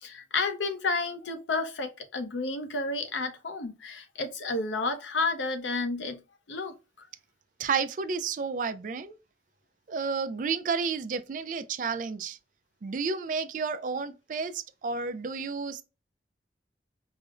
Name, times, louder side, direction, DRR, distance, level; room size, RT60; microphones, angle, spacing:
voice 1, 0.0-6.2 6.5-7.1, left 3 dB, 85° left, 0.6 m, -31 dB
voice 2, 7.6-9.2 9.9-12.4 12.8-15.8, right 5 dB, 45° right, 0.3 m, -31 dB
4.9 x 2.0 x 2.4 m
head